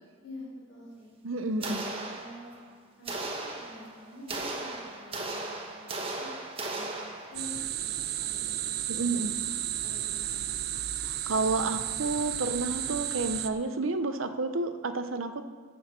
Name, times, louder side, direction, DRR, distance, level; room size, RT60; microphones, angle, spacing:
voice 1, 0.2-1.1 2.1-2.5 3.0-6.3 6.7-9.5 9.8-10.6, left 1 dB, 70° left, -7 dB, 3.7 m, -47 dB
voice 2, 1.2-2.2 8.9-9.3 11.0-15.4, right 3 dB, 90° right, 9 dB, 0.8 m, -30 dB
sound 1, 1.6-2.7 3.1-7.6, right 2 dB, 30° right, 1.2 m, -37 dB
sound 2, 7.3-13.5, right 11 dB, 50° right, 0.5 m, -33 dB
12.5 x 6.4 x 7.5 m, 1.5 s
head